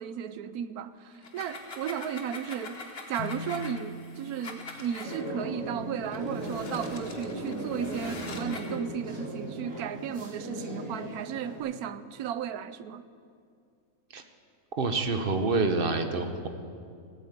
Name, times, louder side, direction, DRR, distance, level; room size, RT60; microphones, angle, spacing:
voice 1, 0.0-2.8 3.1-13.0, right 8 dB, 85° right, 1.2 m, -35 dB
sound 1, 1.1-5.2 6.0-8.8, left 3 dB, 45° left, 1.5 m, -43 dB
sound 2, 3.2-6.7, left 2 dB, 90° left, 1.4 m, -43 dB
sound 3, 5.0-11.6, right 1 dB, 70° right, 4.5 m, -37 dB
voice 2, 14.8-16.5, right 3 dB, 40° right, 1.1 m, -27 dB
16.5 x 8.9 x 8.1 m
omnidirectional pair, 1.6 m